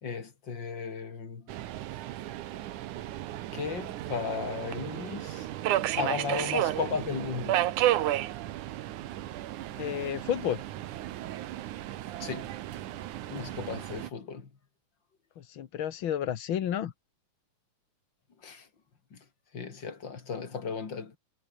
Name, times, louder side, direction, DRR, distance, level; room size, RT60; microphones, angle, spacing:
voice 1, 0.0-1.5 3.5-5.5 6.0-7.6 12.2-12.5 12.9-13.0 13.3-14.5 18.4-18.7 19.1-19.2 19.5-21.2, left 5 dB, 35° left, 3.2 m, -35 dB
Subway metro underground, 1.5-14.1, right 13 dB, 75° right, 2.5 m, -33 dB
voice 2, 9.8-10.6 15.4-16.9, left 10 dB, 55° left, 1.5 m, -31 dB
omnidirectional pair, 3.7 m